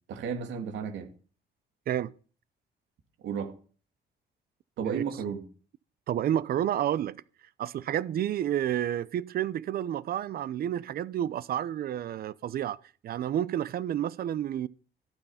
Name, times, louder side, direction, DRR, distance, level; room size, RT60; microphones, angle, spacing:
voice 1, 0.1-1.1 3.2-3.5 4.8-5.4, right 7 dB, 85° right, 2.8 m, -33 dB
voice 2, 6.1-7.2 7.6-12.8 13.0-14.7, right 11 dB, 55° right, 0.7 m, -30 dB
14.5 x 12.5 x 5.8 m
cardioid pair, 160°, 18 cm